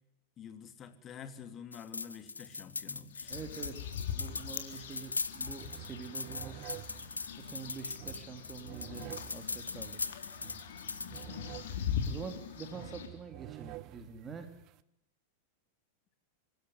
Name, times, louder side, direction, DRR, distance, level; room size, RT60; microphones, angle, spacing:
voice 1, 0.4-3.4 4.7-4.9 7.6-7.7, left 7 dB, 30° left, 9 dB, 3.0 m, -48 dB
sound 1, 1.7-11.3, left 3 dB, 90° left, 0.9 m, -40 dB
sound 2, 3.1-13.1, left 8 dB, 65° left, 3.9 m, -42 dB
voice 2, 3.3-6.7 7.4-10.0 12.1-14.5, right 6 dB, 25° right, 7 dB, 3.8 m, -46 dB
sound 3, 5.2-5.3 5.6-14.8, right 17 dB, 45° right, 1.1 m, -50 dB
25.5 x 16.0 x 9.8 m, 0.79 s
figure-of-eight pair, 95°, 0 cm